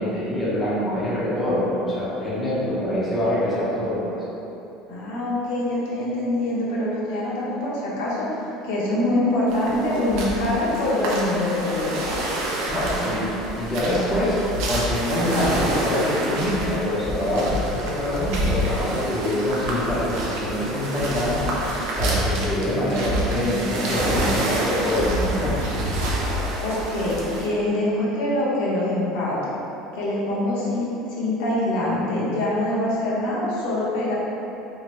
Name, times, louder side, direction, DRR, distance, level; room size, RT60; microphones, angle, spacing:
voice 1, 0.0-4.0 12.7-21.5 22.0-25.8, left 1 dB, 15° left, -9 dB, 0.6 m, -25 dB
voice 2, 4.9-12.0 26.6-29.4 29.9-30.9 31.2-34.2, left 1 dB, 80° left, -7 dB, 0.8 m, -24 dB
sound 1, 9.5-27.5, right 1 dB, 65° right, 0.5 m, -27 dB
2.7 x 2.6 x 3.0 m, 3.0 s
cardioid pair, 160°, 0 cm